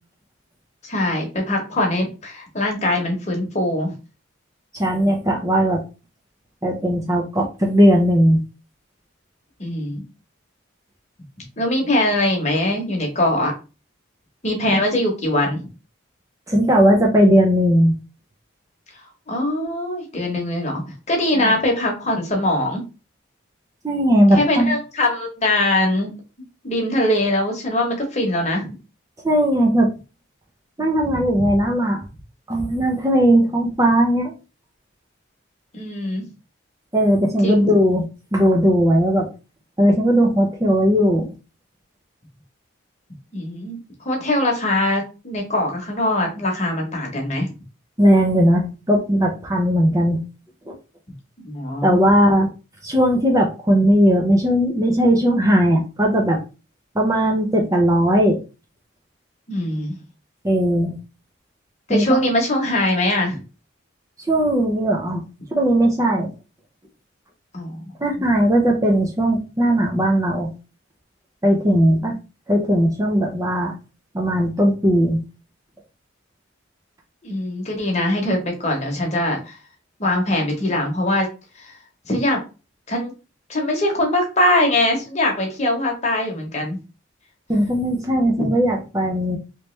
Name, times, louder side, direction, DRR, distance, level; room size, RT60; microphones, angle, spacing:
voice 1, 0.8-3.9 9.6-10.0 11.6-13.5 14.4-15.6 19.3-20.8 21.1-22.8 24.3-26.1 26.6-28.6 35.7-36.3 37.4-37.6 43.3-47.5 51.4-52.0 59.5-60.0 61.9-63.4 67.5-67.9 71.7-72.2 77.2-79.6 80.0-81.3 81.5-81.8 82.0-82.4 82.9-83.1 83.5-86.8 88.4-88.5, left 1 dB, 35° left, 1 dB, 1.0 m, -22 dB
voice 2, 4.7-5.8 6.6-8.4 14.7-14.8 16.5-17.9 21.3-21.5 23.8-24.7 29.2-29.9 30.8-32.0 32.5-34.3 36.9-38.0 38.3-39.3 39.8-41.3 48.0-50.2 50.7-50.8 51.8-52.5 52.8-56.4 57.0-58.4 60.4-60.9 61.9-62.2 64.3-65.2 65.5-66.3 68.0-70.5 71.4-72.1 72.5-73.7 74.1-75.2 87.5-89.4, equal, 15° right, 0 dB, 0.5 m, -18 dB
3.1 x 3.0 x 3.2 m, 0.32 s
head